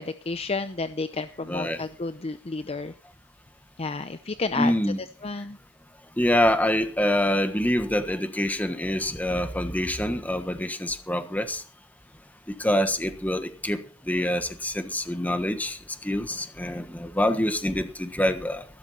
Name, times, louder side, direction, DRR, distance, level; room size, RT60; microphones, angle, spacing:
voice 1, 0.0-2.9 3.8-4.7 5.2-5.6, left 3 dB, 30° left, 11 dB, 0.6 m, -31 dB
voice 2, 1.4-1.8 4.6-5.0 6.2-11.6 12.6-18.6, left 1 dB, 10° left, 9 dB, 1.3 m, -26 dB
15.0 x 13.0 x 4.2 m, 0.39 s
head